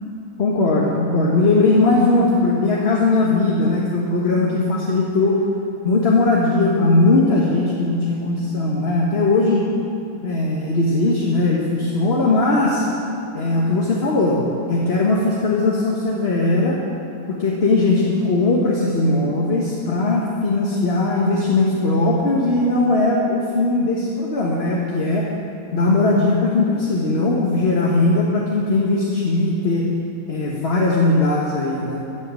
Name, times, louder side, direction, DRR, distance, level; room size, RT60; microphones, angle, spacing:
voice 1, 0.4-5.4 5.8-9.6 10.2-12.9 13.3-14.4 14.7-16.8 17.3-25.3 25.7-29.9 30.3-32.0, left 2 dB, 40° left, -3 dB, 1.5 m, -19 dB
14.0 x 8.4 x 7.5 m, 2.8 s
omnidirectional pair, 1.7 m